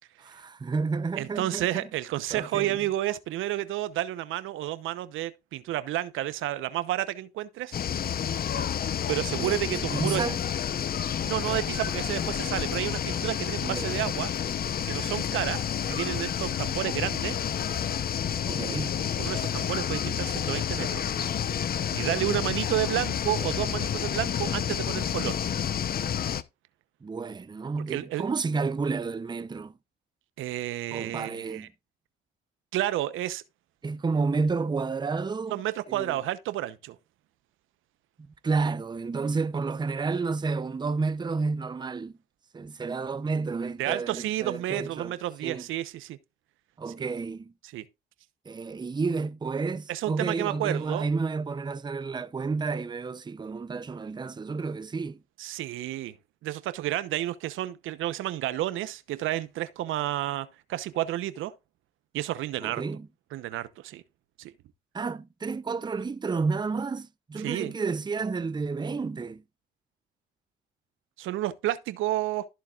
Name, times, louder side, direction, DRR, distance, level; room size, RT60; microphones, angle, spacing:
voice 1, 0.2-1.9 2.3-2.8 9.4-10.4 13.6-13.9 18.5-19.0 27.0-29.7 30.9-31.7 33.8-35.6 35.9-36.2 38.4-42.2 42.5-45.1 45.4-45.6 46.8-47.5 48.5-55.2 62.6-63.1 64.9-69.4, right 4 dB, 20° right, 0.6 m, -31 dB
voice 2, 1.2-7.8 9.1-10.2 11.3-14.3 14.9-17.4 19.2-21.0 21.9-25.4 27.9-28.2 30.4-31.7 32.7-33.4 35.5-37.0 43.8-46.2 47.7-47.8 49.9-51.1 55.4-56.2 56.4-61.5 62.1-62.8 63.3-64.0 64.4-64.5 67.4-67.7 71.2-72.5, right 14 dB, 85° right, 0.9 m, -31 dB
sound 1, 7.7-26.4, left 9 dB, 50° left, 0.8 m, -30 dB
13.5 x 7.2 x 2.5 m
cardioid pair, 90°, 20 cm